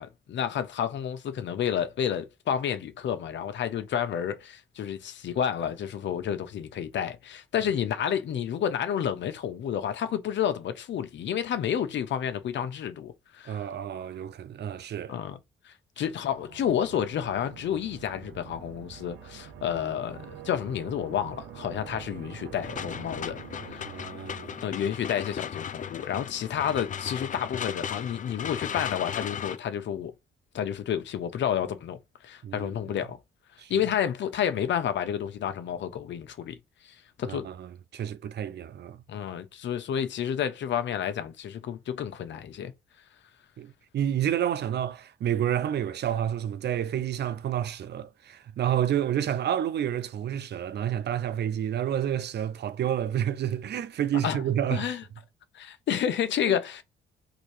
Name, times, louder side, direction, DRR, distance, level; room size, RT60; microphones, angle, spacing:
voice 1, 0.0-13.6 15.1-15.4 15.6-23.4 23.7-23.9 24.6-30.1 30.5-32.0 32.2-33.2 33.7-36.6 36.8-37.5 39.1-42.7 54.2-54.4 54.7-55.0 55.5-56.8, left 9 dB, 65° left, 1.0 m, -30 dB
voice 2, 13.4-15.2 23.9-24.6 32.4-32.7 33.6-33.7 37.2-39.0 43.6-54.9 56.5-56.6, right 10 dB, 60° right, 0.6 m, -29 dB
sound 1, 16.0-24.5, right 9 dB, 80° right, 0.9 m, -46 dB
sound 2, 22.6-29.6, left 8 dB, 40° left, 0.5 m, -36 dB
3.9 x 2.7 x 4.9 m
cardioid pair, 90°, 20 cm